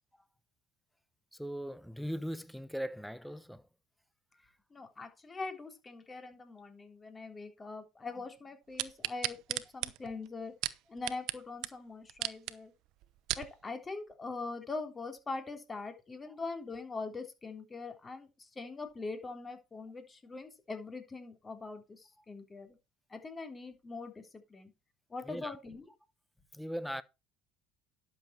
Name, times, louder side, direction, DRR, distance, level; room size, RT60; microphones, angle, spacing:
voice 1, 1.3-3.7 25.2-25.6 26.5-27.0, equal, ahead, 0.9 m, -39 dB
voice 2, 4.7-10.5 10.9-12.7 13.3-22.8 23.1-24.7 25.1-25.8, left 3 dB, 25° left, 3.4 m, -42 dB
sound 1, 8.8-11.4 11.6-11.7 12.1-12.5 13.0-13.5 14.1-14.2, right 16 dB, 70° right, 0.9 m, -35 dB
11.5 x 7.1 x 4.3 m
supercardioid pair, 85°, 0 cm